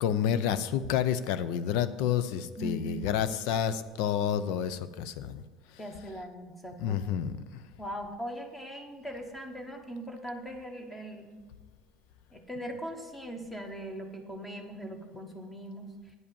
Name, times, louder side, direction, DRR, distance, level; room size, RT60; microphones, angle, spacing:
voice 1, 0.0-5.4 6.8-7.3, left 9 dB, 70° left, 14 dB, 0.5 m, -29 dB
voice 2, 2.6-3.1 5.8-7.2 7.8-11.4 12.3-15.9, equal, 10° left, 4 dB, 1.0 m, -40 dB
9.5 x 5.2 x 7.0 m, 1.3 s
cardioid pair, 160°, 0 cm